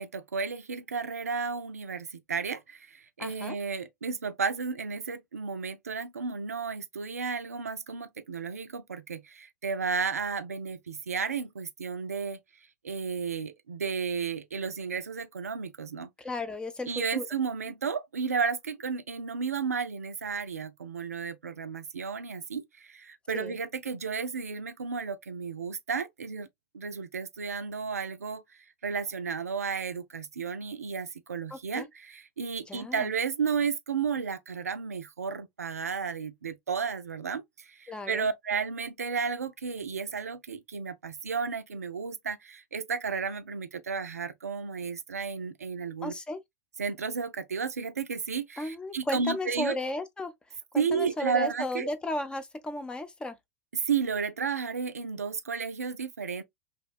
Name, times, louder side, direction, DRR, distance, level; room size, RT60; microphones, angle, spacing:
voice 1, 0.0-2.6 3.2-9.2 9.6-12.4 12.9-16.1 16.9-22.6 23.3-26.5 26.8-28.4 28.8-31.8 32.4-37.4 38.1-42.4 42.7-46.1 46.8-49.7 50.8-51.9 53.9-56.4, right 5 dB, 85° right, 0.3 m, -32 dB
voice 2, 3.2-3.6 16.2-17.3 23.3-23.5 31.5-31.9 32.7-33.1 37.9-38.3 46.0-46.4 48.6-50.3 50.7-53.4, left 1 dB, 10° left, 0.5 m, -34 dB
2.8 x 2.1 x 2.3 m
figure-of-eight pair, 90°, 8 cm